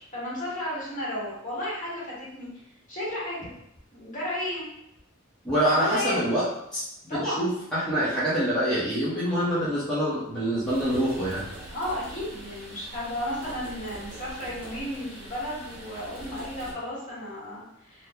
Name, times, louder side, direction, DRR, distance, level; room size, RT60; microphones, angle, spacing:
voice 1, 0.0-2.5 2.9-3.5 3.9-4.7 5.7-6.3 7.1-7.5 10.2-10.3 11.6-18.1, left 1 dB, 40° left, -7 dB, 1.3 m, -33 dB
voice 2, 5.4-6.5 6.7-6.8 7.1-11.4, equal, 5° left, -12 dB, 0.8 m, -25 dB
sound 1, 10.6-16.7, right 1 dB, 65° right, 1.0 m, -43 dB
2.9 x 2.1 x 3.5 m, 0.80 s
head